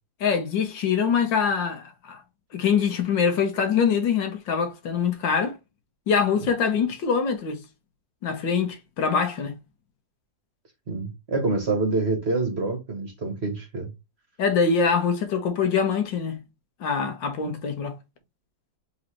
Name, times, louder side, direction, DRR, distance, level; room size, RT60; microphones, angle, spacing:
voice 1, 0.2-2.2 2.5-5.6 6.1-7.6 8.2-9.5 14.4-16.4 16.8-18.0, left 6 dB, 80° left, 1.8 m, -24 dB
voice 2, 10.9-13.9, right 3 dB, 40° right, 1.3 m, -26 dB
4.1 x 3.9 x 3.1 m
omnidirectional pair, 2.0 m